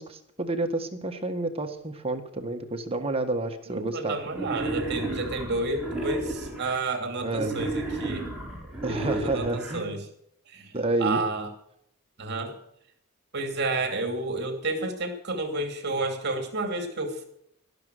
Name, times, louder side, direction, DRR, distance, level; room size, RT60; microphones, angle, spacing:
voice 1, 0.0-4.2 7.2-7.6 8.8-10.0 10.7-11.2, right 2 dB, 25° right, 6 dB, 1.6 m, -29 dB
voice 2, 3.7-8.3 8.9-10.0 10.5-10.7 11.0-11.5 12.2-12.6 13.3-17.2, right 2 dB, 55° right, 5 dB, 2.7 m, -30 dB
Wild animals, 4.3-6.8 7.3-9.8, right 2 dB, 5° right, 4.4 m, -33 dB
12.5 x 12.0 x 6.6 m, 0.68 s
head